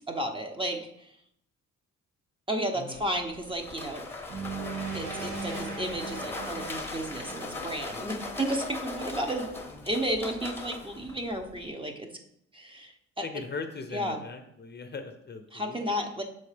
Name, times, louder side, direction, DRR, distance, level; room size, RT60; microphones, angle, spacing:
voice 1, 0.1-1.1 2.5-4.1 4.9-9.5 9.8-12.1 12.5-13.2 13.9-14.2 15.5-16.2, right 1 dB, 15° right, 3 dB, 0.9 m, -32 dB
sound 1, 2.9-11.7, left 2 dB, 10° left, 1.0 m, -40 dB
sound 2, 4.3-8.5, right 4 dB, 70° right, 1.7 m, -39 dB
voice 2, 9.8-10.2 13.2-15.9, left 4 dB, 35° left, 6 dB, 0.8 m, -40 dB
6.4 x 4.3 x 5.1 m, 0.76 s
cardioid pair, 90°, 30 cm